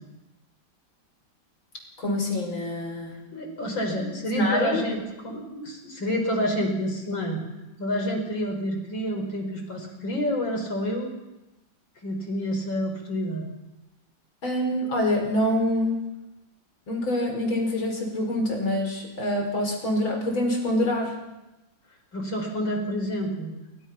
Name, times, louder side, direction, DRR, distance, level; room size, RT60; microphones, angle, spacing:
voice 1, 2.0-3.2 4.3-4.8 14.4-16.0 16.9-21.1, left 1 dB, 85° left, 3 dB, 6.1 m, -25 dB
voice 2, 3.3-7.4 7.8-11.1 12.0-13.5 22.1-23.5, equal, 70° left, 4 dB, 5.8 m, -29 dB
28.5 x 25.0 x 5.9 m, 0.99 s
omnidirectional pair, 2.1 m